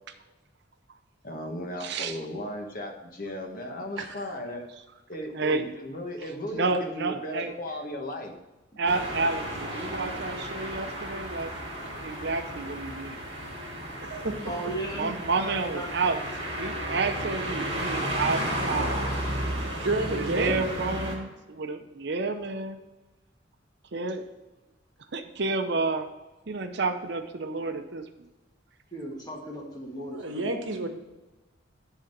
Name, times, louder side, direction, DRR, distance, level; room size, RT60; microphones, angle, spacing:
voice 1, 1.2-4.6 5.1-8.3, left 1 dB, 45° left, 3 dB, 1.4 m, -36 dB
voice 2, 1.8-2.2 5.3-5.7 6.5-7.5 8.8-11.5 12.0-13.2 14.9-16.2 16.5-19.0 20.1-22.8 23.9-24.3 25.1-26.1 26.5-28.0, right 3 dB, 60° right, 7 dB, 0.7 m, -30 dB
voice 3, 4.0-4.4 14.0-14.4 19.8-20.6 30.1-30.9, right 2 dB, 80° right, 4 dB, 1.2 m, -30 dB
sound 1, 8.9-21.2, right 1 dB, 30° right, 2.7 m, -33 dB
voice 4, 14.5-15.1 15.4-16.1 28.9-30.5, right 1 dB, 20° left, -1 dB, 1.9 m, -36 dB
11.0 x 3.8 x 5.9 m, 1.1 s
head